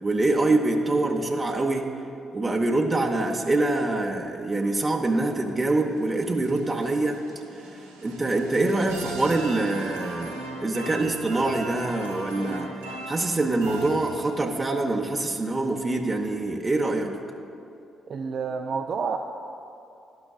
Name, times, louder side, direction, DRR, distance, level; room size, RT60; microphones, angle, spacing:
voice 1, 0.0-1.9 2.3-7.2 7.7-10.3 10.6-12.7 13.1-17.1, right 2 dB, 30° right, 1 dB, 0.7 m, -25 dB
sound 1, 5.7-14.6, right 2 dB, 85° right, 0.7 m, -38 dB
voice 2, 18.1-19.2, right 5 dB, 55° right, 4 dB, 0.3 m, -29 dB
12.0 x 5.6 x 2.4 m, 2.7 s
figure-of-eight pair, 40°, 0 cm